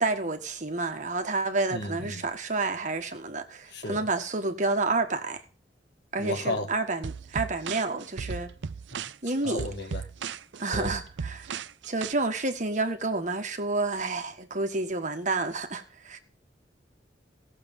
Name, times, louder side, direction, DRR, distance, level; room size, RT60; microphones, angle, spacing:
voice 1, 0.0-5.4 6.1-8.5 9.2-9.7 10.6-11.5 11.8-16.2, right 3 dB, 45° right, 1.5 m, -29 dB
voice 2, 1.7-2.2 3.7-4.0 6.2-6.7 8.9-9.0 9.4-10.0 10.7-10.9, left 2 dB, 65° left, 1.8 m, -34 dB
sound 1, 7.0-12.1, right 6 dB, 80° right, 0.5 m, -36 dB
16.5 x 6.9 x 5.4 m
head